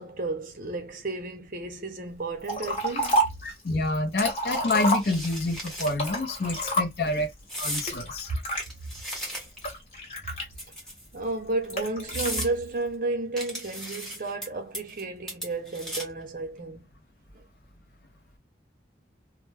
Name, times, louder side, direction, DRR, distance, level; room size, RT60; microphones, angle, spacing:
voice 1, 0.0-3.2 7.1-7.2 11.1-16.8 17.3-17.4, right 3 dB, 50° right, 0.6 m, -32 dB
Liquid, 2.5-3.5 3.9-5.5 5.9-7.2 7.9-8.6 9.2-10.9 11.7-12.4, equal, 35° left, 1.1 m, -28 dB
voice 2, 3.4-7.3 7.6-8.3, left 2 dB, 60° left, 0.5 m, -28 dB
sound 1, 4.7-5.9 6.3-6.6 7.5-7.9 8.5-9.7 10.5-11.1 11.6-11.7 12.1-12.5 13.4-14.5 14.7-15.0 15.3-16.2, equal, 5° left, 0.8 m, -36 dB
2.1 x 2.0 x 3.1 m
head